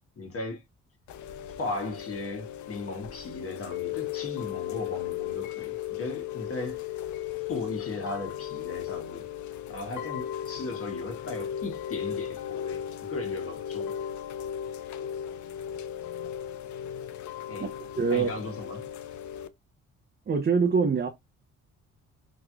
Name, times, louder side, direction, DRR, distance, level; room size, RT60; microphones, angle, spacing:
voice 1, 0.2-0.6 1.6-6.8 7.5-9.3 9.7-12.8 13.1-14.0 17.5-17.7 18.1-18.9, left 2 dB, 50° left, 1.4 m, -37 dB
Chime / Rain, 1.1-19.5, left 10 dB, 75° left, 0.5 m, -36 dB
voice 2, 18.0-18.3 20.3-21.1, right 5 dB, 30° right, 0.6 m, -24 dB
3.6 x 3.0 x 2.3 m
cardioid pair, 90°, 30 cm